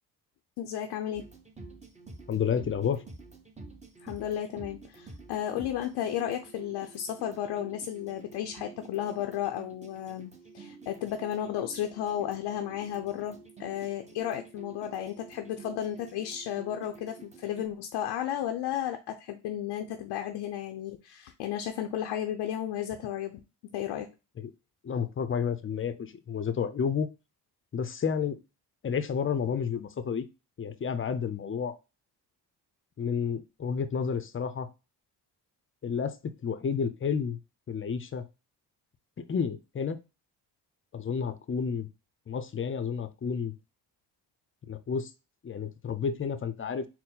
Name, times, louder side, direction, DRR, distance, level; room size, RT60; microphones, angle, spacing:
voice 1, 0.6-1.3 4.0-23.4 23.7-24.1, left 11 dB, 80° left, 4 dB, 0.6 m, -33 dB
sound 1, 1.1-17.7, right 4 dB, 15° right, 1.0 m, -49 dB
voice 2, 2.3-3.0 24.4-24.5 24.8-27.1 27.7-28.4 28.8-30.3 30.6-31.8 33.0-34.7 35.8-37.4 37.7-38.2 39.2-40.0 40.9-41.9 42.3-43.5 44.7-45.1 45.4-46.9, left 6 dB, 30° left, 12 dB, 0.6 m, -31 dB
4.3 x 2.1 x 3.8 m, 0.28 s
supercardioid pair, 60°, 41 cm